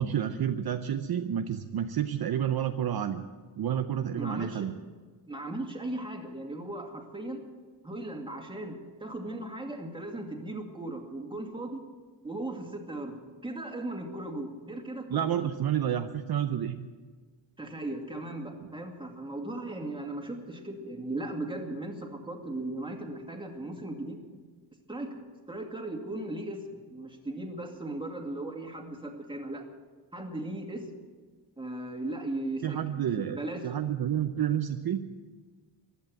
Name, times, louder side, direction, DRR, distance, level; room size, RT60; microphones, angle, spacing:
voice 1, 0.0-3.2 3.6-4.7 15.1-16.9 32.6-33.4 33.6-35.1, right 9 dB, 50° right, 7 dB, 0.7 m, -29 dB
voice 2, 4.2-4.7 5.3-7.4 7.8-11.8 12.2-15.5 17.6-24.2 24.9-25.2 25.5-26.6 26.9-29.7 30.1-30.9 31.6-33.6, right 1 dB, 10° right, 2 dB, 2.4 m, -37 dB
15.5 x 11.5 x 7.6 m, 1.5 s
cardioid pair, 120°, 48 cm